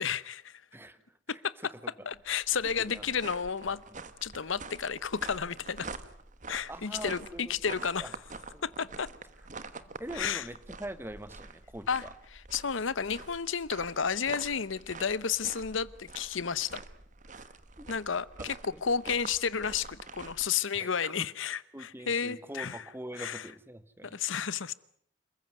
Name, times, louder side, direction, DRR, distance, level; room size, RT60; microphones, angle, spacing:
voice 1, 0.0-0.6 1.3-1.5 2.1-3.8 4.2-5.9 6.5-8.1 8.6-9.1 10.1-10.4 11.9-12.0 12.3-16.8 17.9-22.8 23.2-23.5 24.0-24.7, left 6 dB, 75° left, 18 dB, 0.9 m, -32 dB
voice 2, 0.7-1.4 1.7-1.9 2.9-3.0 6.7-7.5 8.0-8.1 8.5-8.7 10.0-12.1 17.8-17.9 18.4-18.5 18.7-18.8 20.7-21.3 21.7-24.2, right 1 dB, 10° right, 13 dB, 1.1 m, -43 dB
sound 1, 2.1-20.5, right 4 dB, 40° right, 1.2 m, -46 dB
27.5 x 15.0 x 9.3 m, 0.68 s
head